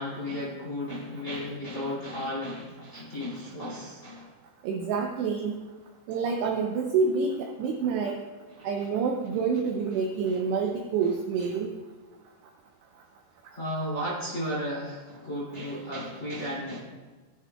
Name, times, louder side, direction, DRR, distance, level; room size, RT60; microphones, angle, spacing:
voice 1, 0.0-4.3 8.6-8.7 10.3-10.4 13.5-16.8, equal, 20° left, -7 dB, 2.0 m, -34 dB
voice 2, 4.6-5.5 6.1-8.2 8.6-11.7, right 5 dB, 80° right, 3 dB, 2.5 m, -27 dB
15.5 x 9.5 x 2.3 m, 1.3 s
omnidirectional pair, 5.6 m